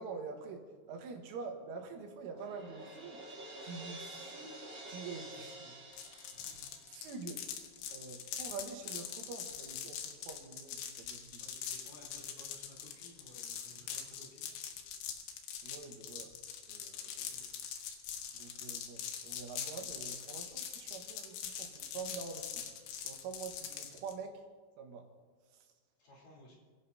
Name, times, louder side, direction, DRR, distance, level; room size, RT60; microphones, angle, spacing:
voice 1, 0.0-3.2 3.6-4.6 4.9-5.8 6.9-7.4 7.9-11.5 15.6-16.3 16.7-17.3 18.3-22.7 23.1-24.4 24.8-25.0, right 4 dB, 80° right, 3 dB, 4.0 m, -46 dB
Crash cymbal, 2.3-7.3, right 1 dB, 35° right, 4.0 m, -48 dB
sound 1, 5.9-24.1, left 8 dB, 75° left, 3.6 m, -43 dB
voice 2, 6.3-6.7 11.4-14.5 17.1-17.4 26.0-26.6, left 1 dB, 45° left, -4 dB, 4.9 m, -58 dB
28.5 x 16.0 x 2.8 m, 1.5 s
omnidirectional pair, 5.6 m